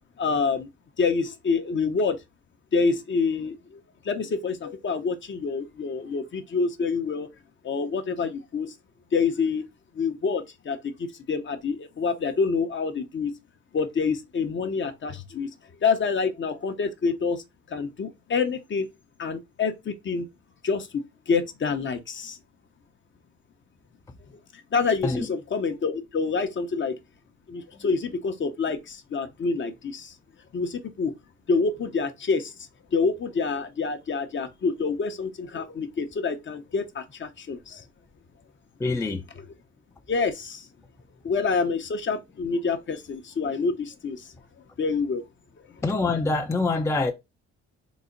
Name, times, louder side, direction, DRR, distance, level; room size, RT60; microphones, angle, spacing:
voice 1, 0.2-0.7 1.0-2.2 2.7-7.3 7.6-8.7 9.1-9.6 9.9-13.3 13.7-15.5 15.8-18.9 19.2-20.3 20.6-22.4 24.5-27.0 27.5-30.1 30.5-31.1 31.5-32.5 32.9-37.8 40.1-40.7 41.2-44.3 44.8-45.2, left 4 dB, 40° left, 0.7 m, -27 dB
voice 2, 38.8-39.2 45.8-47.1, left 3 dB, 10° left, 0.4 m, -25 dB
4.0 x 2.1 x 3.8 m
cardioid pair, 90°, 30 cm